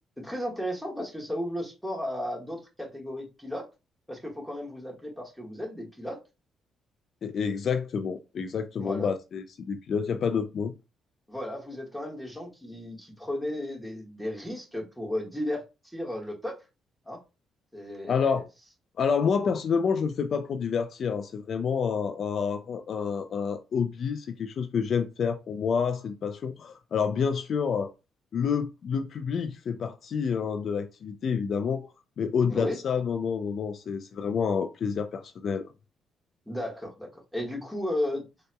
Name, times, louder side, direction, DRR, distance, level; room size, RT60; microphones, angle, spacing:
voice 1, 0.2-3.7 4.1-6.2 8.8-9.1 11.3-16.6 17.0-17.2 17.7-18.4 32.5-32.8 36.5-38.3, left 1 dB, ahead, 1.5 m, -34 dB
voice 2, 7.2-10.7 18.1-18.4 19.0-27.9 28.3-31.9 32.2-35.6, left 6 dB, 55° left, 0.3 m, -28 dB
3.8 x 2.8 x 2.2 m
cardioid pair, 90°, 0 cm